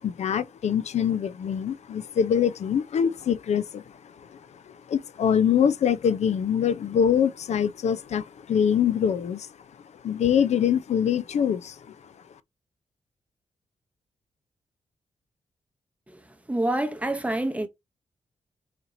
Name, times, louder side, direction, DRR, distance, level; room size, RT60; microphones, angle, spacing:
voice 1, 0.0-3.8 4.9-9.5 10.0-11.8, left 8 dB, 70° left, 0.5 m, -24 dB
voice 2, 16.5-17.7, right 1 dB, 10° right, 0.8 m, -27 dB
4.2 x 2.8 x 3.7 m
wide cardioid pair, 110°, 12 cm